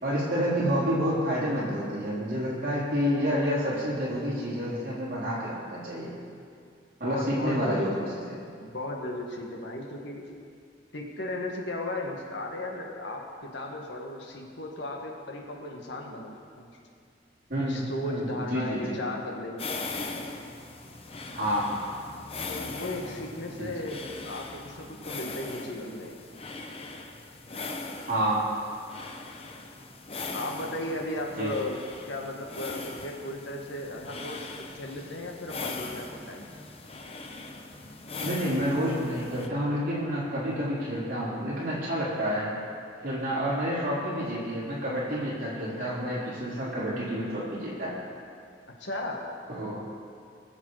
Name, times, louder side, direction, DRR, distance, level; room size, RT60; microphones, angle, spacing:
voice 1, 0.0-6.1 7.0-8.4 17.5-18.9 21.3-21.7 23.6-23.7 28.1-28.5 31.4-31.5 38.2-42.5 43.0-48.0 49.5-49.8, equal, 45° right, -7 dB, 4.0 m, -29 dB
voice 2, 7.0-8.1 8.6-10.2 10.9-16.7 17.6-19.7 22.5-26.2 30.3-36.5 48.8-49.3, left 1 dB, 75° left, 0 dB, 1.8 m, -36 dB
sound 1, 19.6-39.5, left 3 dB, 30° left, 0.8 m, -40 dB
21.0 x 7.4 x 4.9 m, 2.3 s
head